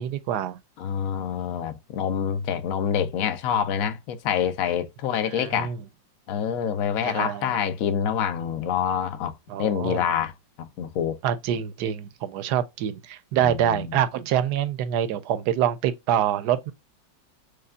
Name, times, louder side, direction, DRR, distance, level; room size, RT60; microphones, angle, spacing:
voice 1, 0.0-0.6 5.3-5.8 7.0-7.5 9.5-10.0 11.2-16.7, right 10 dB, 75° right, 1.1 m, -26 dB
voice 2, 0.8-5.7 6.3-9.3 9.6-10.3 10.6-11.1 13.4-14.0, left 8 dB, 65° left, 0.9 m, -26 dB
6.5 x 2.3 x 2.3 m
omnidirectional pair, 1.9 m